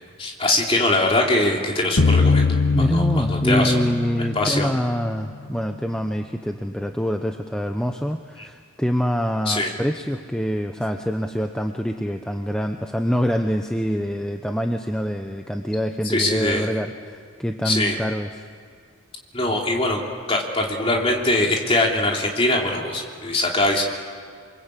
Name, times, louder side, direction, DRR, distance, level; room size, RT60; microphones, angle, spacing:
voice 1, 0.2-2.4 2.8-3.7 4.3-4.7 9.5-9.7 16.0-16.7 17.6-18.0 19.3-20.0 20.3-23.8, left 2 dB, 25° left, 0 dB, 3.2 m, -22 dB
sound 1, 2.0-5.1, left 4 dB, 65° left, 1.1 m, -21 dB
voice 2, 2.7-18.4, equal, 5° left, 5 dB, 0.8 m, -25 dB
28.0 x 23.5 x 8.3 m, 2.2 s
head